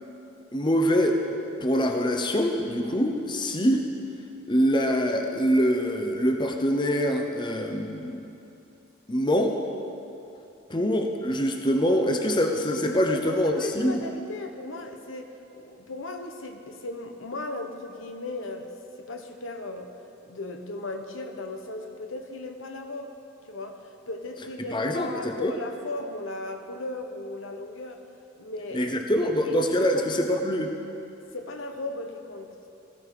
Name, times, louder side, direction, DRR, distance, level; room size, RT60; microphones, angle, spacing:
voice 1, 0.5-1.2 1.6-3.9 4.5-8.3 9.1-9.6 10.7-14.0 24.7-25.5 28.7-30.7, equal, 20° left, 4 dB, 0.8 m, -24 dB
voice 2, 13.1-18.7 19.0-19.9 20.2-23.1 23.5-28.0 28.4-28.9 29.4-30.4 31.3-32.5, left 2 dB, 75° left, 5 dB, 1.2 m, -37 dB
17.5 x 15.0 x 4.9 m, 2.8 s
head